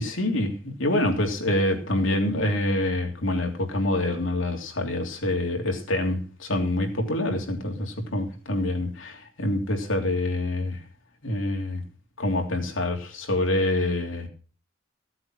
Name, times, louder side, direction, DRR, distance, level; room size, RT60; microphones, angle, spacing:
voice 1, 0.0-10.8 11.2-11.8 12.2-14.3, left 1 dB, 75° left, 3.1 m, -26 dB
16.0 x 7.9 x 6.1 m
head